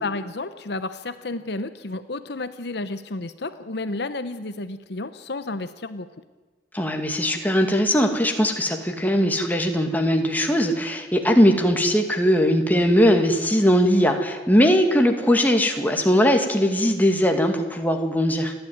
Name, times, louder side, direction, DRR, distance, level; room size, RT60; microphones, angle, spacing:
voice 1, 0.0-6.1, left 2 dB, 65° left, 11 dB, 0.9 m, -31 dB
voice 2, 6.7-18.5, equal, 10° left, 3 dB, 2.1 m, -20 dB
29.0 x 11.5 x 9.5 m, 1.3 s
head